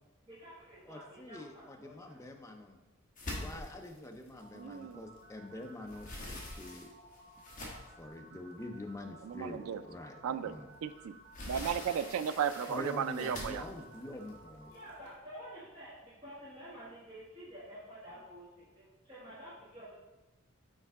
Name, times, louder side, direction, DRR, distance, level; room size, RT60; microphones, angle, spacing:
voice 1, 0.3-2.2 14.7-19.9, equal, 20° right, -10 dB, 1.4 m, -50 dB
voice 2, 0.9-2.8 3.2-6.9 8.0-10.7 12.7-14.7, left 1 dB, 15° left, 3 dB, 0.5 m, -45 dB
sound 1, 3.2-5.3 5.7-8.1 8.7-8.8 9.3-9.4 10.8-15.1, left 1 dB, 40° left, 1.2 m, -45 dB
sound 2, 4.4-15.0, right 2 dB, 50° right, 2.2 m, -57 dB
voice 3, 4.6-5.0 9.2-9.8 10.2-11.1 11.5-13.6, right 8 dB, 90° right, 13 dB, 0.3 m, -35 dB
6.5 x 4.5 x 3.6 m, 1.1 s
head